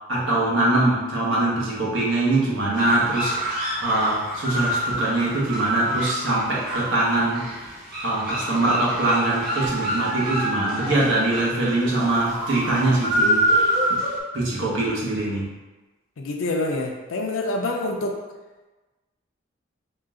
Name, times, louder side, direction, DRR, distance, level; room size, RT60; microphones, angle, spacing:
voice 1, 0.1-7.7 8.0-14.0 14.3-15.5, right 2 dB, 75° right, -5 dB, 1.1 m, -23 dB
sound 1, 2.7-14.2, right 1 dB, 50° right, 1.4 m, -27 dB
voice 2, 16.2-18.2, left 2 dB, 80° left, 1 dB, 0.5 m, -26 dB
3.8 x 2.4 x 3.6 m, 1.2 s
head